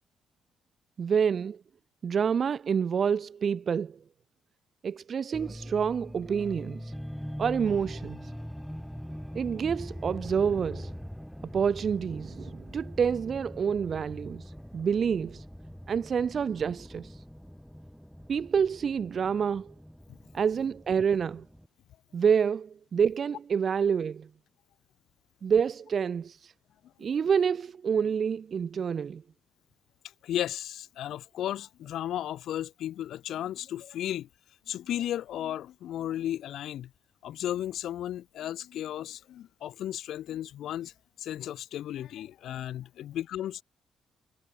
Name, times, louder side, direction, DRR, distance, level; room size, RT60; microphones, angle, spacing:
voice 1, 1.0-1.6 2.0-4.0 4.8-6.9 7.4-8.3 9.3-10.9 11.5-15.4 15.9-17.2 18.3-19.7 20.3-21.4 22.1-24.3 25.4-26.5 27.0-29.2, right 7 dB, 50° right, 4.3 m, -28 dB
sound 1, 5.3-21.7, equal, ahead, 5.3 m, -42 dB
voice 2, 30.2-34.3 34.7-36.9 37.2-40.9 41.2-43.6, left 12 dB, 75° left, 1.6 m, -34 dB
cardioid pair, 90°, 0 cm